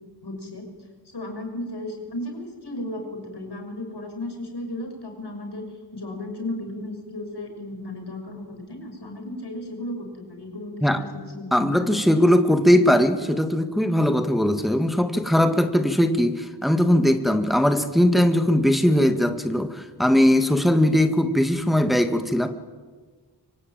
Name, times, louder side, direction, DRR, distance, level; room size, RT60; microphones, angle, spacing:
voice 1, 0.2-0.7 1.1-5.7 5.9-12.1, left 1 dB, 85° left, 3 dB, 6.3 m, -35 dB
voice 2, 11.5-22.5, left 1 dB, ahead, 7 dB, 1.9 m, -20 dB
25.0 x 24.5 x 9.1 m, 1.4 s
wide cardioid pair, 60°, 39 cm